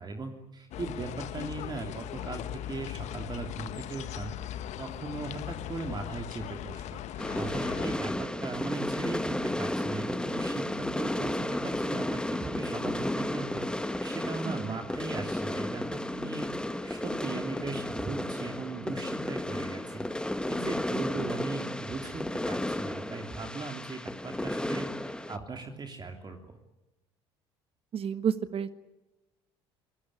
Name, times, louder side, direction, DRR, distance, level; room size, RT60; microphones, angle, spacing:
voice 1, 0.0-16.5 16.8-20.0 20.4-26.4, right 3 dB, 35° right, 4 dB, 3.1 m, -38 dB
sound 1, 0.7-8.0, left 12 dB, 65° left, 1.4 m, -39 dB
sound 2, 7.2-25.4, left 1 dB, 5° left, 1.7 m, -33 dB
voice 2, 14.4-14.8 27.9-28.7, right 7 dB, 50° right, 12 dB, 1.4 m, -31 dB
26.5 x 18.0 x 10.0 m, 1.0 s
hypercardioid pair, 65°, 13 cm